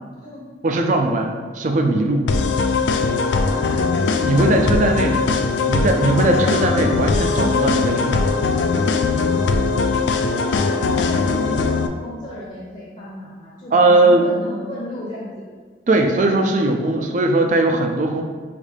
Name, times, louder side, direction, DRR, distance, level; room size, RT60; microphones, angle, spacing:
voice 1, 0.6-2.3 4.3-5.2 5.7-8.3 13.7-14.2 15.9-18.2, right 2 dB, 40° right, 4 dB, 0.4 m, -19 dB
sound 1, 2.3-11.9, left 4 dB, 70° left, 0.3 m, -20 dB
voice 2, 3.2-3.9 4.3-5.1 6.1-6.2 9.4-15.5, left 1 dB, 40° left, -6 dB, 0.7 m, -34 dB
5.0 x 2.6 x 3.3 m, 1.5 s
head